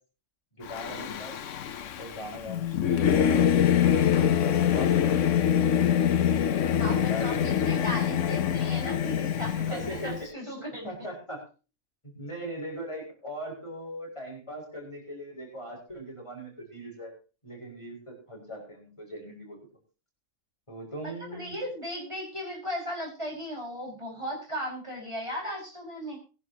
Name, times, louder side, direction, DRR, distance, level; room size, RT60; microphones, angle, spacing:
voice 1, 0.5-1.3 2.0-3.5 3.9-5.4 6.9-7.9 8.3-8.4 9.7-11.4 12.1-17.1 17.4-19.7 20.7-21.6, equal, 25° left, -1 dB, 5.1 m, -40 dB
Singing / Musical instrument, 0.7-10.2, left 9 dB, 75° left, 1.1 m, -25 dB
voice 2, 6.8-10.9 21.0-26.2, equal, 25° right, -2 dB, 5.3 m, -36 dB
20.5 x 11.0 x 2.8 m, 0.34 s
omnidirectional pair, 1.3 m